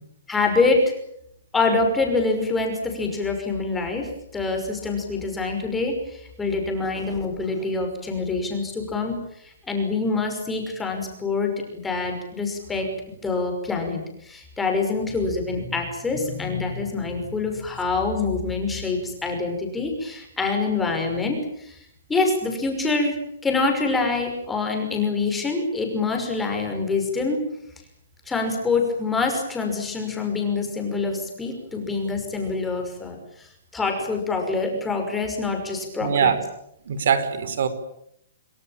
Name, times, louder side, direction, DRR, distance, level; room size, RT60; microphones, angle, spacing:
voice 1, 0.3-0.9 1.5-12.9 13.2-21.8 22.1-27.4 28.3-36.3, left 3 dB, 5° left, 2 dB, 5.8 m, -25 dB
voice 2, 36.0-36.4 36.9-37.7, right 7 dB, 55° right, 12 dB, 4.6 m, -22 dB
29.0 x 21.0 x 9.1 m, 0.74 s
hypercardioid pair, 170°, 0 cm